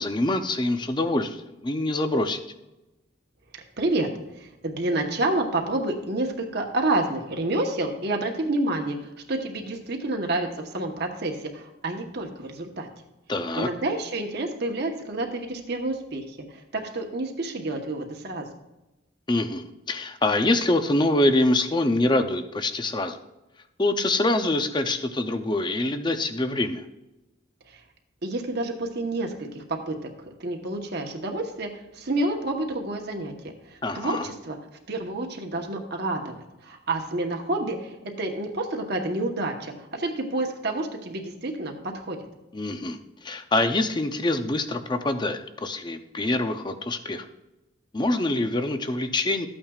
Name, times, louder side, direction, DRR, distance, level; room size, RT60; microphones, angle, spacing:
voice 1, 0.0-1.4 1.6-2.4 13.3-13.7 19.3-23.2 23.8-26.8 33.8-34.3 42.5-43.0 43.2-47.3 47.9-49.5, left 2 dB, 20° left, 8 dB, 0.6 m, -25 dB
voice 2, 3.8-4.1 4.4-12.9 13.5-18.5 27.7-27.8 28.2-30.0 30.3-33.3 33.7-34.6 34.9-42.2, right 2 dB, 55° right, 2 dB, 1.1 m, -29 dB
13.5 x 8.7 x 2.4 m, 0.98 s
head